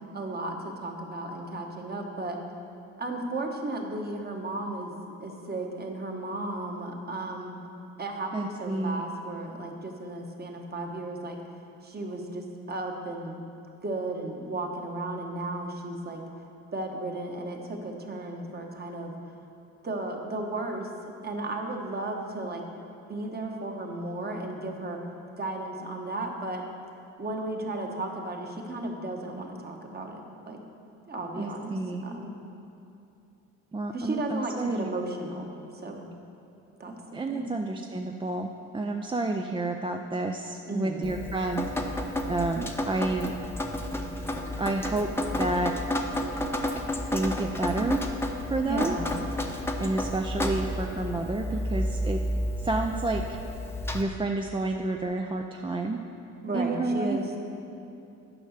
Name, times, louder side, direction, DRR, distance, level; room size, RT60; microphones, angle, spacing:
voice 1, 0.1-2.4 3.0-7.5 8.0-11.4 11.8-13.4 13.8-16.2 16.7-19.1 19.8-20.9 21.2-22.6 23.1-25.0 25.4-26.6 27.2-30.6 31.1-32.4 33.9-36.0 36.8-36.9 37.3-37.5 40.7-41.1 48.6-49.0 56.4-57.3, right 2 dB, 30° right, 2 dB, 1.2 m, -34 dB
voice 2, 8.3-9.0 31.4-32.0 33.7-34.9 37.1-41.7 42.3-43.3 44.6-45.1 45.4-45.7 47.1-48.0 48.5-49.0 49.8-52.2 52.6-53.4 53.9-56.0 56.5-57.4, right 2 dB, 15° right, 3 dB, 0.4 m, -30 dB
Drip, 41.0-54.0, left 1 dB, 10° left, 0.8 m, -31 dB
9.9 x 5.4 x 6.5 m, 2.8 s
cardioid pair, 90°, 30 cm